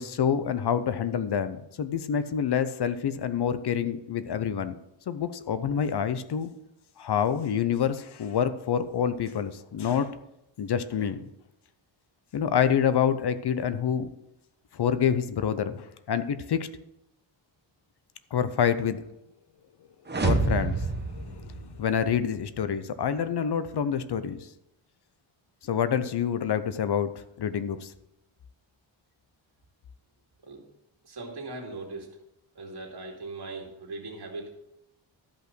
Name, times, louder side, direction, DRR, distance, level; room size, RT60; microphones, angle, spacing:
voice 1, 0.0-4.7 5.1-6.5 7.0-10.1 10.6-11.2 12.3-14.1 14.7-16.7 18.3-19.0 20.2-24.4 25.6-27.9, left 8 dB, 55° left, 12 dB, 0.7 m, -27 dB
sound 1, 20.1-22.2, right 3 dB, 20° right, 1.0 m, -28 dB
voice 2, 31.0-32.1 32.5-34.5, right 2 dB, 55° right, 0 dB, 2.7 m, -39 dB
13.0 x 5.6 x 6.0 m, 0.87 s
wide cardioid pair, 140°, 48 cm